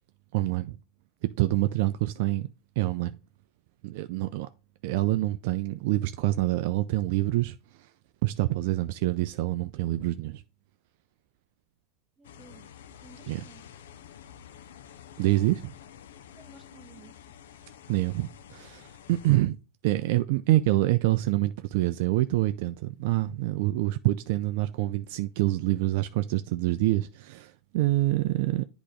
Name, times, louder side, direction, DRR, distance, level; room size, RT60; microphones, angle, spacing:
voice 1, 0.3-0.8 1.2-3.2 3.8-4.5 4.8-7.9 8.2-10.4 13.3-13.4 15.2-15.7 17.9-19.6 19.8-28.7, right 17 dB, 65° right, 0.4 m, -26 dB
sound 1, 12.2-19.4, left 9 dB, 80° left, 0.5 m, -49 dB
voice 2, 12.2-12.7 13.0-13.6 16.3-17.2, right 5 dB, 25° right, 0.9 m, -54 dB
8.2 x 3.0 x 4.9 m
hypercardioid pair, 115°, 0 cm